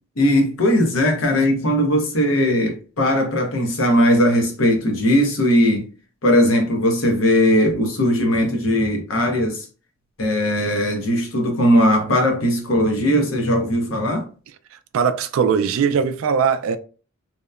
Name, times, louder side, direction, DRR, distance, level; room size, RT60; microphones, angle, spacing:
voice 1, 0.2-5.8 6.2-9.7 10.2-14.3, equal, 65° left, 0.8 m, -18 dB
voice 2, 14.7-16.8, right 6 dB, 70° right, 0.3 m, -20 dB
2.8 x 2.1 x 2.3 m
head